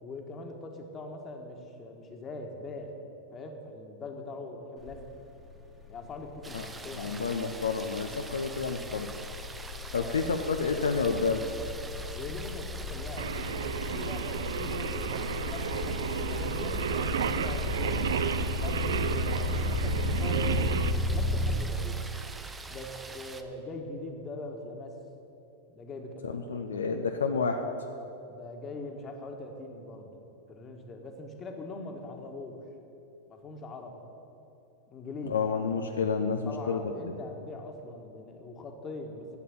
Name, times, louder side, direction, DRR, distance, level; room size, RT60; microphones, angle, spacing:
voice 1, 0.0-2.9 3.3-5.0 5.9-7.2 9.9-10.1 12.1-18.1 18.6-22.0 22.7-25.0 25.7-27.0 28.3-30.1 30.5-32.6 33.3-34.0 34.9-35.4 36.5-39.4, left 2 dB, 25° left, 3 dB, 1.7 m, -42 dB
sound 1, 4.8-5.1 5.4-21.6, left 2 dB, 10° left, 1.7 m, -34 dB
sound 2, 6.4-23.4, right 3 dB, 10° right, 0.7 m, -45 dB
voice 2, 6.9-9.1 9.9-11.4 26.2-27.6 35.2-37.2, left 5 dB, 70° left, 4 dB, 0.7 m, -30 dB
Singing, 13.2-20.9, right 8 dB, 65° right, 0.5 m, -32 dB
11.5 x 8.4 x 8.7 m, 2.8 s
figure-of-eight pair, 90°, 0 cm